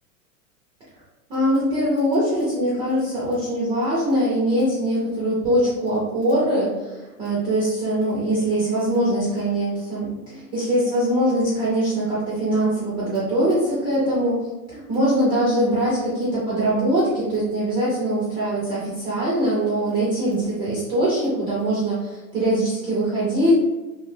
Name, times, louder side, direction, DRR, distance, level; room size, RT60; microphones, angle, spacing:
voice 1, 1.3-14.4 14.7-23.5, right 1 dB, 10° right, -8 dB, 0.3 m, -22 dB
2.7 x 2.1 x 3.1 m, 1.1 s
hypercardioid pair, 120°, 45 cm